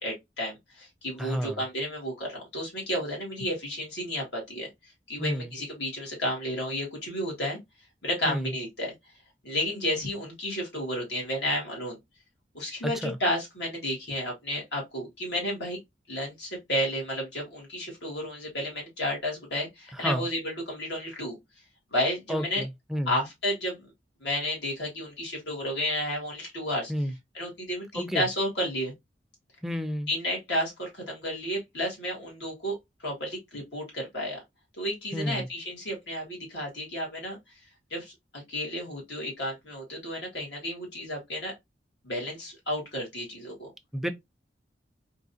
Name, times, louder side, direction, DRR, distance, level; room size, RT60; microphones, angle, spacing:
voice 1, 0.0-4.7 5.1-7.6 8.0-8.9 9.4-12.0 12.5-15.8 16.1-21.4 21.9-22.6 23.1-23.8 24.2-26.9 27.3-28.9 30.1-32.7 33.0-34.4 34.8-37.4 37.9-41.5 42.0-43.7, equal, 75° left, 2.0 m, -32 dB
voice 2, 1.2-1.6 5.2-5.5 8.3-8.6 12.8-13.2 19.9-20.3 22.3-23.2 26.9-27.1 27.9-28.3 29.6-30.1 35.1-35.5 43.9-44.1, equal, ahead, 0.4 m, -31 dB
3.7 x 2.7 x 2.7 m
head